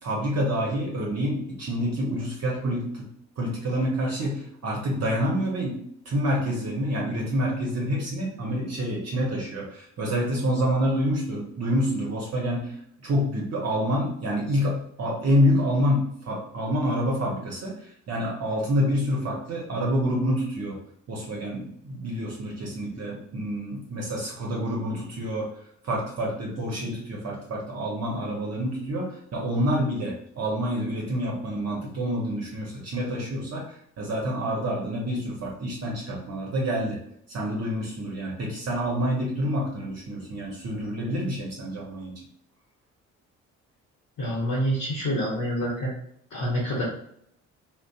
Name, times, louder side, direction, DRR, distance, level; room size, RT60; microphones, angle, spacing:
voice 1, 0.0-3.0 3.4-5.8 6.1-12.7 13.0-17.7 18.1-20.8 21.1-25.5 25.8-33.7 34.0-37.0 37.3-42.1, equal, 45° right, -2 dB, 0.8 m, -27 dB
voice 2, 44.2-45.9 46.3-46.8, equal, 55° left, -6 dB, 0.9 m, -27 dB
2.5 x 2.1 x 2.3 m, 0.70 s
hypercardioid pair, 50°, 37 cm